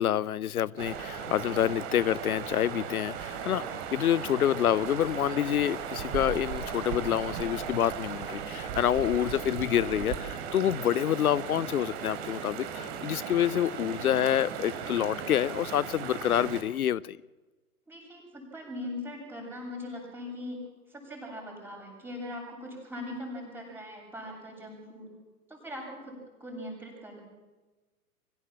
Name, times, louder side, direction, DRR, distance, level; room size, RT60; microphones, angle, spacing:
voice 1, 0.0-3.6 3.9-17.2, left 10 dB, 75° left, 0.6 m, -27 dB
sound 1, 0.8-16.6, right 7 dB, 45° right, 3.4 m, -37 dB
voice 2, 17.9-20.6 20.9-25.1 25.5-27.2, left 1 dB, 5° right, 7.6 m, -40 dB
24.0 x 15.5 x 7.4 m
figure-of-eight pair, 110°, 44 cm